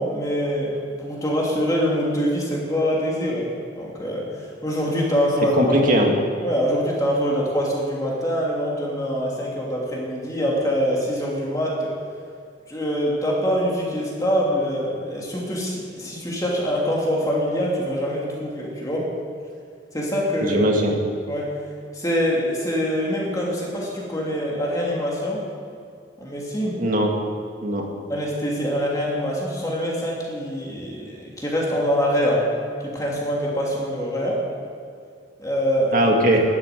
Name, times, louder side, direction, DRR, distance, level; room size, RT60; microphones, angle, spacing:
voice 1, 0.0-5.7 6.4-11.9 12.7-19.1 19.9-20.6 21.3-21.5 21.9-25.4 26.2-26.8 28.1-32.5 32.8-34.4 35.4-35.9, equal, 20° left, -4 dB, 2.8 m, -24 dB
voice 2, 5.6-6.2 20.4-21.0 26.8-27.1 27.6-27.9 35.9-36.4, equal, 45° right, 1 dB, 2.0 m, -19 dB
12.5 x 8.9 x 9.1 m, 2.3 s
head